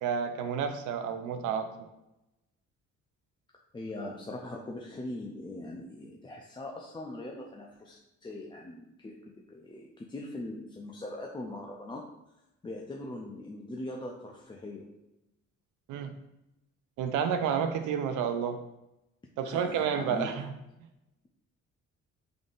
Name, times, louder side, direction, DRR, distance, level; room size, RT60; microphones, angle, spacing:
voice 1, 0.0-1.7 15.9-16.1 17.0-18.6 19.4-20.5, right 7 dB, 90° right, 8 dB, 0.5 m, -30 dB
voice 2, 3.7-12.1 12.6-14.9 19.4-20.4, left 2 dB, 15° left, -1 dB, 0.4 m, -41 dB
3.9 x 3.5 x 2.4 m, 0.90 s
cardioid pair, 90°, 30 cm